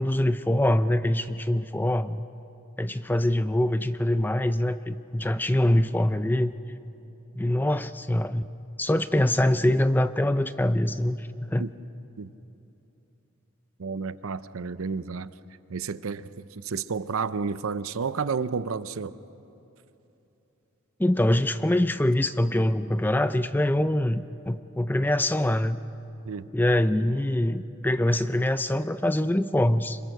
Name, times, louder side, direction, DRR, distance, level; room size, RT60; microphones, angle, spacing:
voice 1, 0.0-2.2 2.8-6.5 7.4-8.5 8.8-11.7 21.0-25.8 26.5-30.0, left 1 dB, 10° left, 0.4 m, -24 dB
voice 2, 13.8-15.3 15.7-19.2 26.2-26.5, right 5 dB, 75° right, 0.6 m, -31 dB
26.0 x 22.0 x 6.5 m
head